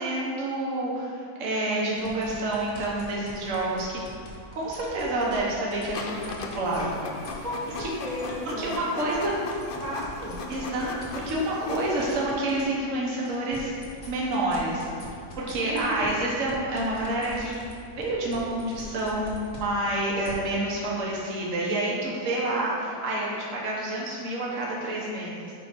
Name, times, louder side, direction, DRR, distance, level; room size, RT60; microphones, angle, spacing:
voice 1, 0.0-4.0 4.5-7.1 7.8-7.9 8.6-9.3 10.5-11.0 11.2-13.7 14.0-14.9 15.4-25.5, right 1 dB, 55° right, -4 dB, 1.4 m, -28 dB
sound 1, 2.0-6.9 7.2-12.7 13.1-20.3, left 2 dB, 55° left, 1.5 m, -44 dB
Printer, 5.9-12.2, left 3 dB, 75° left, 0.5 m, -38 dB
voice 2, 7.4-10.4 15.7-16.1, equal, 25° right, -8 dB, 1.4 m, -35 dB
5.2 x 4.5 x 5.8 m, 2.3 s
omnidirectional pair, 1.7 m